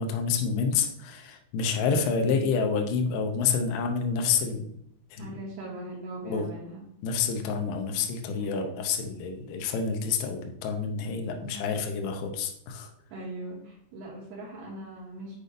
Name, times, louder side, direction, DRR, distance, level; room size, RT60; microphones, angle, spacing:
voice 1, 0.0-4.7 5.1-5.4 6.2-6.5 7.0-12.9, left 5 dB, 90° left, 4 dB, 1.9 m, -28 dB
voice 2, 5.2-6.8 8.4-8.7 11.3-11.6 13.1-15.4, right 1 dB, 70° right, -5 dB, 2.8 m, -40 dB
8.0 x 5.1 x 2.5 m, 0.73 s
omnidirectional pair, 5.0 m